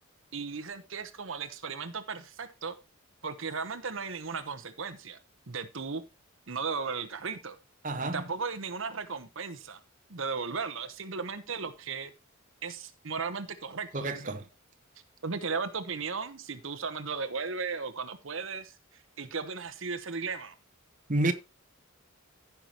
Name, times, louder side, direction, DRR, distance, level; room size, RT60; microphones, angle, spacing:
voice 1, 0.3-2.7 3.2-5.2 5.5-6.0 6.5-7.6 8.1-9.8 10.1-12.1 12.6-14.3 15.2-20.5, right 5 dB, 65° right, 1.0 m, -36 dB
voice 2, 7.8-8.2 13.9-14.4 21.1-21.3, right 2 dB, 40° right, 1.1 m, -29 dB
15.5 x 6.0 x 3.0 m
head